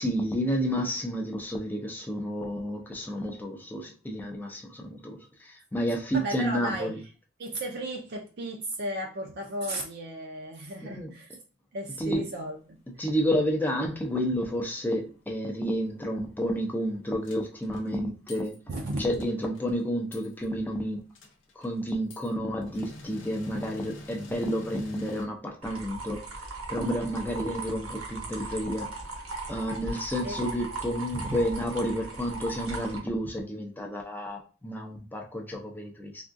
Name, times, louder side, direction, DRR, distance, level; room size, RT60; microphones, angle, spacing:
voice 1, 0.0-7.0 10.8-11.1 12.0-12.3 13.0-18.6 19.0-21.0 21.6-28.9 29.5-36.2, equal, 10° left, 0.5 m, -30 dB
voice 2, 6.1-7.1 7.4-11.3 11.7-13.1 18.7-19.0 30.2-30.4 31.2-31.4, right 1 dB, 50° right, 0.4 m, -35 dB
sound 1, 17.2-17.9 18.3-18.6 18.9-19.7 20.1-20.5 20.7-20.8 21.1-22.3 22.6-25.2, left 2 dB, 60° left, 0.6 m, -46 dB
sound 2, 25.6-33.0, right 3 dB, 90° right, 0.9 m, -38 dB
3.6 x 2.3 x 2.5 m
head